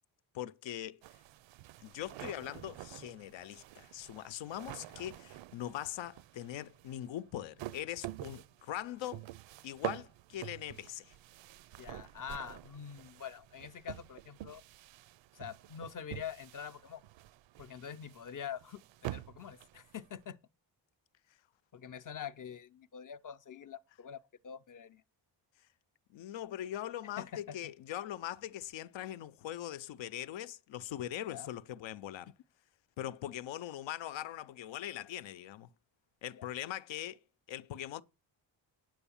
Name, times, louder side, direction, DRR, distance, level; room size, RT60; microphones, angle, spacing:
voice 1, 0.3-1.0 1.8-9.2 9.6-11.2 26.1-32.3 33.0-35.7 36.2-37.2 37.5-38.0, left 12 dB, 80° left, 0.7 m, -41 dB
sound 1, 1.0-20.2, right 15 dB, 80° right, 0.6 m, -47 dB
voice 2, 11.8-14.6 15.3-17.0 17.6-20.4 21.7-24.2 24.4-25.0 27.2-27.7 31.3-31.5 36.4-36.5, left 8 dB, 45° left, 0.6 m, -45 dB
9.0 x 7.9 x 7.1 m
cardioid pair, 135°, 44 cm